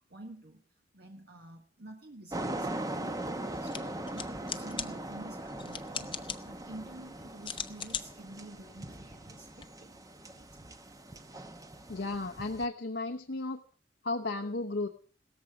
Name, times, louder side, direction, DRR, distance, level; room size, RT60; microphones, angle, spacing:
voice 1, 0.1-0.6 0.9-3.2 3.6-10.4, right 1 dB, 65° right, 3 dB, 1.6 m, -50 dB
sound 1, 2.3-12.7, right 1 dB, 20° right, 0.9 m, -40 dB
sound 2, 3.5-9.6, left 7 dB, 30° left, 0.8 m, -42 dB
voice 2, 11.9-13.6 14.0-14.9, left 2 dB, 75° left, 3 dB, 0.9 m, -34 dB
17.5 x 14.0 x 4.8 m, 0.43 s
head